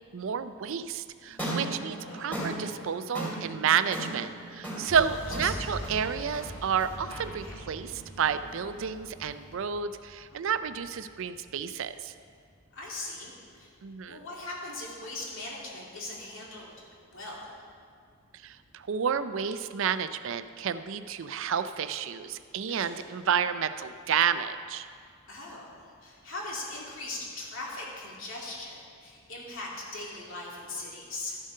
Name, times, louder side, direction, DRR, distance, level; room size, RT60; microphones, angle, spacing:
voice 1, 0.1-12.1 13.8-14.2 18.4-24.9, right 7 dB, 60° right, 12 dB, 0.4 m, -30 dB
sound 1, 1.2-9.5, right 1 dB, 5° left, 2.8 m, -38 dB
voice 2, 1.4-2.4 4.7-5.5 7.4-7.7 10.3-10.5 12.7-13.7 14.0-16.7 17.0-17.5 22.7-23.1 25.3-31.4, left 2 dB, 60° left, -4 dB, 2.6 m, -40 dB
sound 2, 4.8-12.8, equal, 30° left, 2.2 m, -44 dB
13.0 x 7.4 x 5.4 m, 2.2 s
head